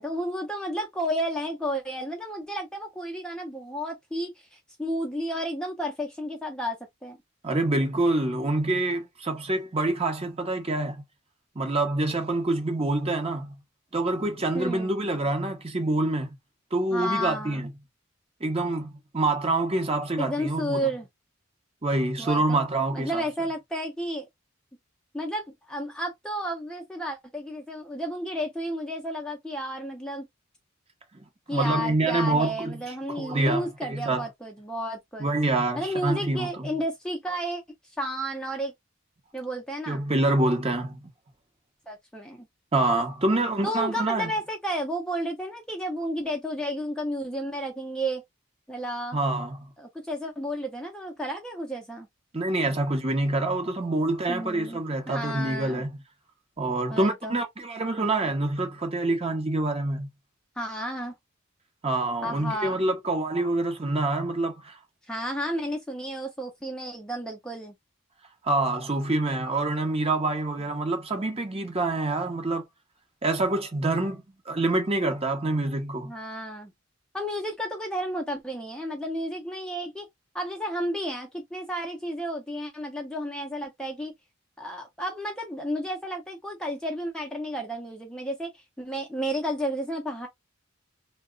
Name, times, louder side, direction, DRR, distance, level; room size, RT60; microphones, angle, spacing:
voice 1, 0.0-7.2 14.5-14.9 16.9-17.7 20.2-21.1 22.2-22.6 22.9-24.3 25.1-30.3 31.5-35.3 35.8-37.6 38.0-38.7 39.3-40.0 41.9-42.5 43.6-48.2 48.7-49.2 49.8-52.1 54.3-55.8 56.9-57.4 60.6-61.1 62.2-62.8 65.1-67.7 76.0-76.7 77.1-80.1 80.3-84.1 84.6-90.3, equal, 5° left, 0.6 m, -32 dB
voice 2, 7.4-11.0 11.5-13.6 13.9-16.4 16.7-17.7 18.4-20.8 21.8-23.2 31.5-32.8 33.1-34.2 35.2-36.7 39.9-41.1 42.7-44.3 49.1-49.7 52.3-55.9 56.6-60.1 61.8-64.8 68.4-72.6 73.2-76.1, right 2 dB, 30° right, 0.8 m, -26 dB
2.8 x 2.2 x 3.8 m
head